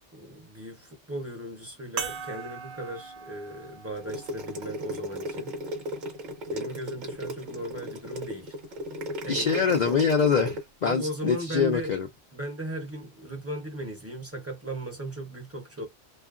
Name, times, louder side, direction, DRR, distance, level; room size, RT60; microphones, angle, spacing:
voice 1, 0.1-5.6 6.5-8.6 9.2-9.5 10.8-11.9 12.3-15.9, right 1 dB, 15° right, 0.7 m, -37 dB
sound 1, 2.0-6.8 7.6-7.7 9.8-9.9, right 6 dB, 70° right, 0.9 m, -41 dB
sound 2, 4.0-10.6, equal, 45° right, 0.9 m, -35 dB
voice 2, 9.3-12.1, left 6 dB, 60° left, 0.4 m, -24 dB
2.6 x 2.4 x 2.4 m
omnidirectional pair, 1.2 m